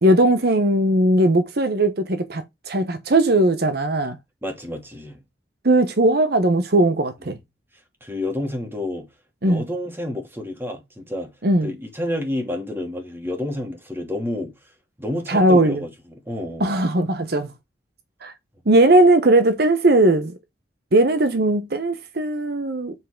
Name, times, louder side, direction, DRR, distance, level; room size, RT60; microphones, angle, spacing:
voice 1, 0.0-4.2 5.6-7.4 9.4-9.6 11.4-11.7 15.3-15.8 16.6-17.5 18.2-18.3 18.7-20.3 20.9-22.9, right 1 dB, 60° right, 1.0 m, -18 dB
voice 2, 4.4-5.2 8.0-9.1 9.4-11.3 11.6-14.5 15.0-16.8, left 1 dB, 15° right, 2.7 m, -29 dB
7.7 x 5.6 x 3.8 m
head